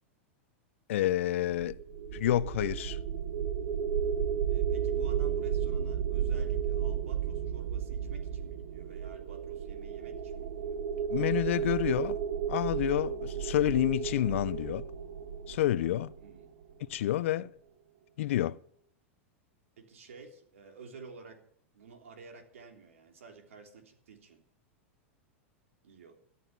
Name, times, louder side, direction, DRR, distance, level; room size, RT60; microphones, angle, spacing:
voice 1, 0.9-1.8 2.1-3.0 11.1-12.2 12.5-14.9 15.5-16.1 16.9-17.5 18.2-18.6, left 13 dB, 75° left, 0.6 m, -29 dB
sound 1, 1.5-16.6, right 8 dB, 70° right, 1.4 m, -33 dB
voice 2, 4.5-10.8 16.2-16.5 19.8-21.4 21.7-24.4 25.8-26.2, right 4 dB, 85° right, 3.3 m, -51 dB
13.0 x 12.5 x 6.8 m
hypercardioid pair, 115°, 7 cm